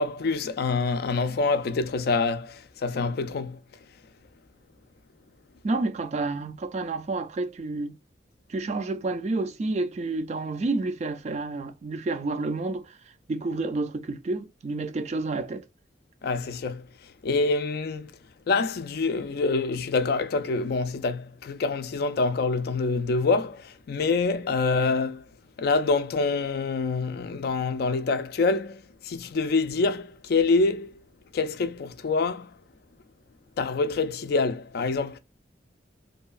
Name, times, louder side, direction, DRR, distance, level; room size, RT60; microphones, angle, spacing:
voice 1, 0.0-3.6 16.2-16.9 17.2-18.1 18.5-25.2 25.6-30.9 31.3-32.5 33.6-35.2, left 3 dB, 60° left, 0.4 m, -26 dB
voice 2, 5.6-8.0 8.5-12.9 13.3-15.7, right 3 dB, 40° right, 0.3 m, -29 dB
2.7 x 2.3 x 2.4 m
head